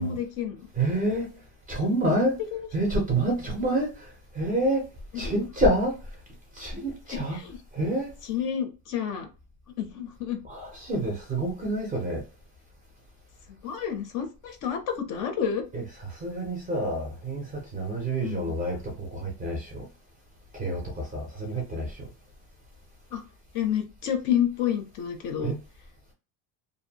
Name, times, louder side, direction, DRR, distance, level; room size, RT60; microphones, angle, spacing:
voice 1, 0.0-0.6 2.5-2.6 5.2-5.4 7.1-7.6 8.3-9.3 9.8-10.4 13.6-15.6 18.2-18.5 23.1-23.2 23.5-25.5, left 9 dB, 45° left, 0.4 m, -29 dB
voice 2, 0.7-1.4 1.7-2.4 2.7-4.9 5.1-6.0 6.5-7.4 7.7-8.1 10.4-12.2 15.7-19.9 20.5-22.1 25.4-25.6, right 1 dB, 20° right, 0.4 m, -28 dB
2.5 x 2.1 x 2.7 m
cardioid pair, 175°, 44 cm